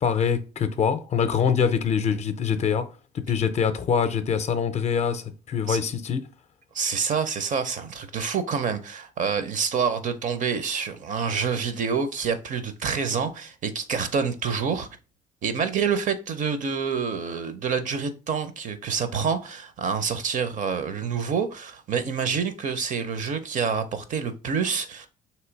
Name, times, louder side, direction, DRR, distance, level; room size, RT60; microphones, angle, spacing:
voice 1, 0.0-2.9 3.3-5.2 5.5-6.2, left 7 dB, 40° left, 0.5 m, -24 dB
voice 2, 6.7-14.9 15.4-25.1, right 6 dB, 50° right, 0.6 m, -27 dB
3.2 x 3.0 x 4.5 m
cardioid pair, 110°, 17 cm